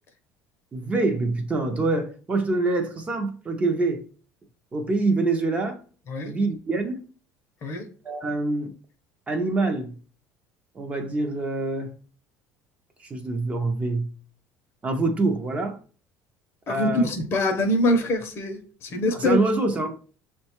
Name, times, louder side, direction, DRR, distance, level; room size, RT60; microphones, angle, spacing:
voice 1, 0.7-4.0 4.7-5.8 6.2-7.0 8.0-8.7 9.3-10.0 10.7-11.9 13.0-14.1 14.8-15.8 16.7-17.1 19.1-19.9, right 2 dB, 20° right, 0.5 m, -25 dB
voice 2, 16.7-19.4, left 1 dB, 40° left, 0.6 m, -24 dB
6.2 x 2.2 x 2.8 m
cardioid pair, 145°, 7 cm